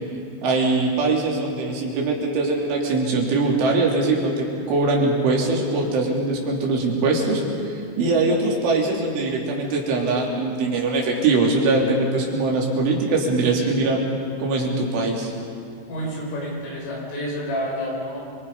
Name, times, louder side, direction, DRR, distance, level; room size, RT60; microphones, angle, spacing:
voice 1, 0.4-14.0 14.4-15.3, right 3 dB, 75° right, -2 dB, 5.6 m, -22 dB
voice 2, 15.9-18.2, equal, 80° left, -3 dB, 8.8 m, -29 dB
29.5 x 24.0 x 5.5 m, 2.4 s
omnidirectional pair, 5.7 m